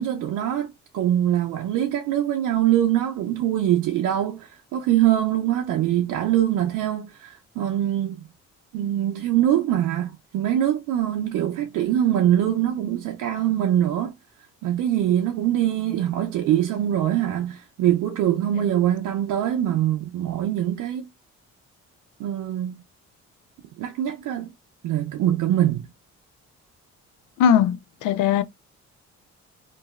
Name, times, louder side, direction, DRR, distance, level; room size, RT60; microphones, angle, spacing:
voice 1, 0.0-8.3 8.7-14.1 14.6-21.1 22.2-22.8 23.8-24.5 24.8-25.8, right 11 dB, 90° right, 0.5 m, -23 dB
voice 2, 27.4-28.4, left 8 dB, 90° left, 0.5 m, -19 dB
2.8 x 2.6 x 2.3 m
cardioid pair, 90°, 30 cm